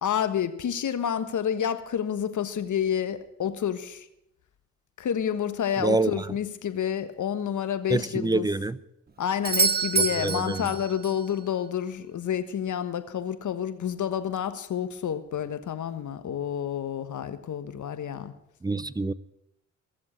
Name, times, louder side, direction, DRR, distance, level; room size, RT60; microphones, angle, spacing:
voice 1, 0.0-4.1 5.0-8.5 9.2-18.3, left 9 dB, 60° left, 1.4 m, -29 dB
voice 2, 5.8-6.1 7.9-8.8 10.0-10.7 18.6-19.1, right 2 dB, 10° right, 0.5 m, -26 dB
Doorbell, 9.4-11.3 15.4-15.5, right 5 dB, 30° right, 1.0 m, -27 dB
16.5 x 7.3 x 8.6 m
supercardioid pair, 65°, 34 cm